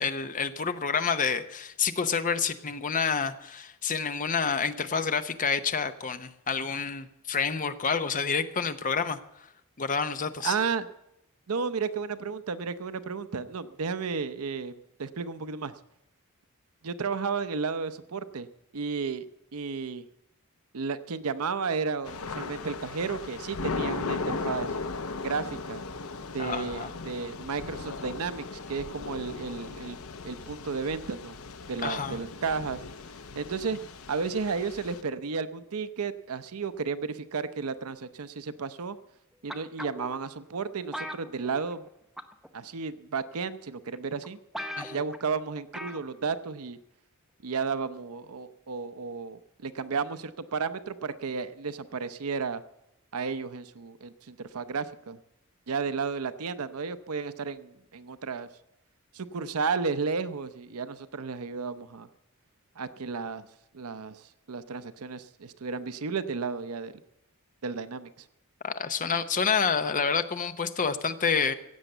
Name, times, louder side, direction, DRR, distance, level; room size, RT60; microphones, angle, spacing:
voice 1, 0.0-9.2 9.8-10.5 26.4-26.9 31.8-32.2 44.8-45.0 68.6-71.5, left 5 dB, 35° left, 10 dB, 0.8 m, -28 dB
voice 2, 10.4-10.9 11.5-15.8 16.8-18.5 18.7-19.3 19.5-20.0 20.7-24.7 25.2-25.8 26.3-30.0 30.2-31.4 31.7-32.8 33.4-33.8 34.1-39.0 39.4-41.9 42.5-44.4 44.9-46.8 47.4-52.6 53.1-55.2 55.7-58.5 59.1-62.1 62.8-63.5 63.7-64.2 64.5-66.9 67.6-68.3, right 5 dB, 80° right, 13 dB, 0.7 m, -33 dB
Thunder / Rain, 22.0-35.0, left 4 dB, 70° left, 0.8 m, -37 dB
sound 1, 39.5-40.2 40.9-41.9 42.2-42.5 43.3-43.4 44.0-44.1 44.2-44.3 44.5-45.2 45.7-46.1 46.4-46.5, equal, ahead, 0.7 m, -38 dB
16.0 x 8.2 x 7.8 m, 0.87 s
head